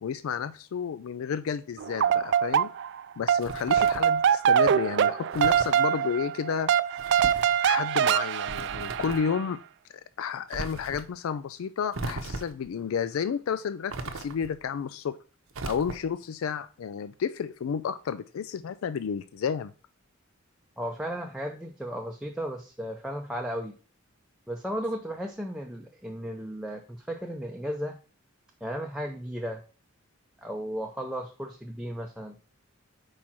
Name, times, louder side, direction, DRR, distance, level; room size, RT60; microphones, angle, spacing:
voice 1, 0.0-2.7 3.2-6.7 7.6-9.6 10.2-15.2 15.7-19.7, left 7 dB, 85° left, 13 dB, 0.4 m, -31 dB
sound 1, 1.8-3.0 3.3-9.4, right 8 dB, 55° right, 0.3 m, -24 dB
sound 2, 3.4-4.2 5.3-5.8 7.0-7.6 8.4-9.3 10.5-11.1 11.9-12.7 13.9-14.6 15.5-16.2, right 3 dB, 80° right, 0.8 m, -37 dB
voice 2, 20.8-23.7 24.5-28.0 28.6-29.6 30.4-32.4, equal, 5° right, 1 dB, 0.5 m, -35 dB
4.8 x 4.3 x 6.0 m, 0.37 s
head